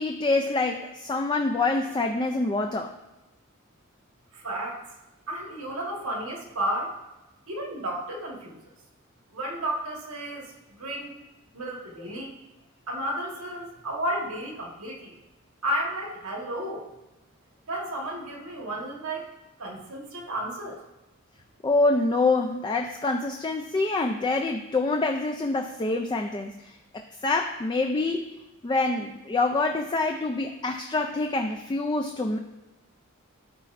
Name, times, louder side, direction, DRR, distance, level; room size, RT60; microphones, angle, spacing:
voice 1, 0.0-2.9 21.6-28.3 28.6-32.4, left 3 dB, 20° left, 3 dB, 0.4 m, -26 dB
voice 2, 4.3-4.8 5.3-7.0 7.5-8.6 9.3-10.5 10.8-11.1 11.5-12.3 12.9-15.2 15.6-16.9 17.7-19.3 19.6-20.8, right 1 dB, 85° right, -1 dB, 1.6 m, -32 dB
12.5 x 4.3 x 2.5 m, 1.0 s
head